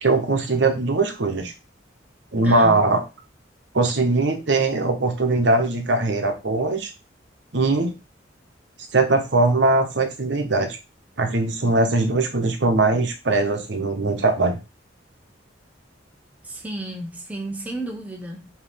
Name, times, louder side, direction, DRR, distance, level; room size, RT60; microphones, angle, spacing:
voice 1, 0.0-1.5 2.3-3.0 3.7-6.9 7.5-7.9 8.9-10.8 11.2-14.6, right 2 dB, 65° right, 0.9 m, -21 dB
voice 2, 2.4-2.8 16.4-18.5, right 1 dB, 10° right, 0.7 m, -32 dB
4.6 x 2.9 x 3.4 m
head